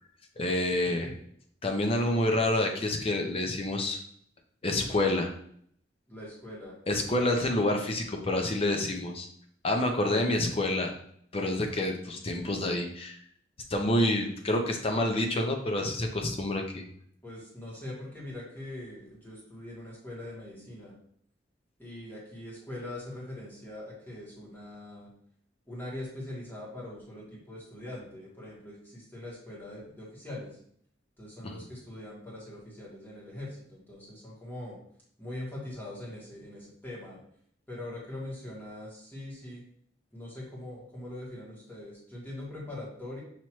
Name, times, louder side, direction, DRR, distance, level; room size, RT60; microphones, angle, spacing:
voice 1, 0.4-1.1 1.6-4.0 4.6-5.3 6.9-9.3 9.6-10.9 11.3-13.2 13.7-16.8 31.4-31.5, left 1 dB, 30° left, 3 dB, 0.6 m, -28 dB
voice 2, 6.1-6.7 10.1-10.6 17.2-20.9 21.8-25.1 25.7-30.6 31.2-34.8 35.2-37.2 37.7-39.6 40.1-43.2, left 1 dB, 10° left, -5 dB, 1.6 m, -42 dB
5.7 x 3.0 x 3.0 m, 0.64 s
head